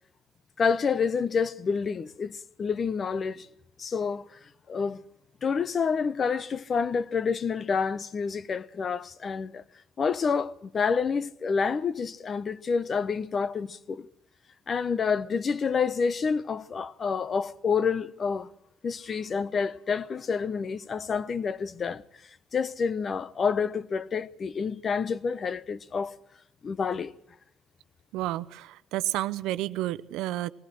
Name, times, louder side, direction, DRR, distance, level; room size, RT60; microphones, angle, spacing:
voice 1, 0.6-3.5 3.8-4.2 4.7-5.0 5.4-9.6 10.0-14.1 14.7-18.5 18.8-22.0 22.5-26.2 26.6-27.1, left 5 dB, 45° left, 0.9 m, -28 dB
voice 2, 28.1-30.5, right 15 dB, 85° right, 0.7 m, -30 dB
20.0 x 17.0 x 7.7 m
cardioid pair, 90°, 0 cm